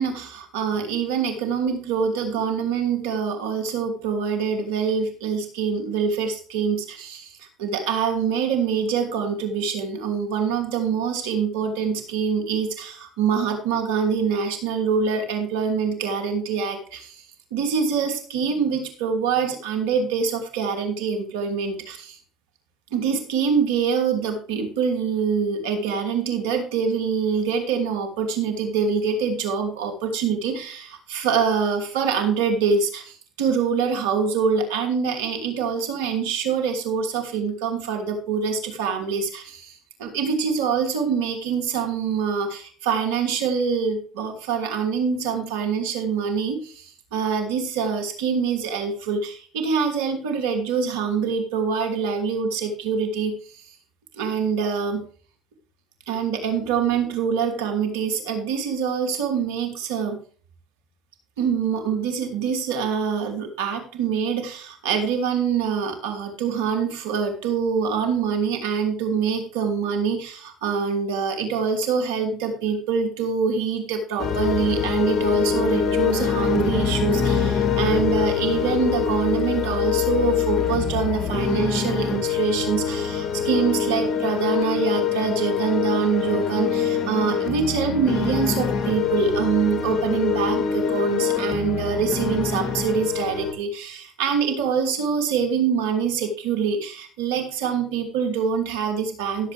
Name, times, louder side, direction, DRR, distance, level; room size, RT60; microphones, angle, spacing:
voice 1, 0.0-17.2 17.5-22.2 22.9-53.6 54.1-55.0 56.1-60.2 61.4-99.5, right 6 dB, 80° right, 5 dB, 2.6 m, -25 dB
sound 1, 74.2-93.5, left 7 dB, 45° left, 2.4 m, -24 dB
16.5 x 7.5 x 3.4 m, 0.41 s
hypercardioid pair, 70°, 0 cm